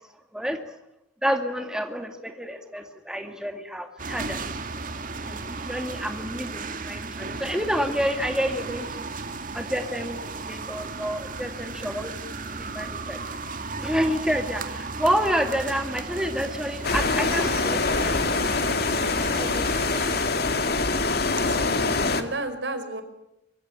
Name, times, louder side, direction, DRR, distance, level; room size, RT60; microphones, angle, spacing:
voice 1, 1.2-4.5 5.2-8.9 9.5-12.1 12.6-13.2 13.7-18.3 19.4-20.1, equal, 5° right, 5 dB, 2.1 m, -29 dB
sound 1, 4.0-20.3, right 3 dB, 45° right, 2.2 m, -35 dB
sound 2, 16.8-22.2, left 3 dB, 60° left, 2.3 m, -24 dB
voice 2, 21.3-21.7 22.1-23.0, right 2 dB, 75° right, 8 dB, 4.8 m, -32 dB
25.5 x 23.5 x 9.0 m, 0.88 s
head